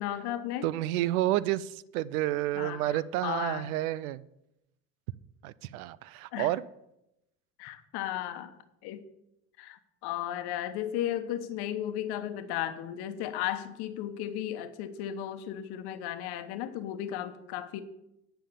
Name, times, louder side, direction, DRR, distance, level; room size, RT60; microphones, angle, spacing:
voice 1, 0.0-0.7 2.5-3.7 6.3-6.5 7.6-8.5 8.8-9.0 9.6-17.8, left 11 dB, 65° left, 9 dB, 1.1 m, -35 dB
voice 2, 0.6-4.3 5.4-6.7, right 14 dB, 85° right, 20 dB, 0.6 m, -30 dB
9.9 x 5.7 x 6.8 m, 0.86 s
supercardioid pair, 85°, 42 cm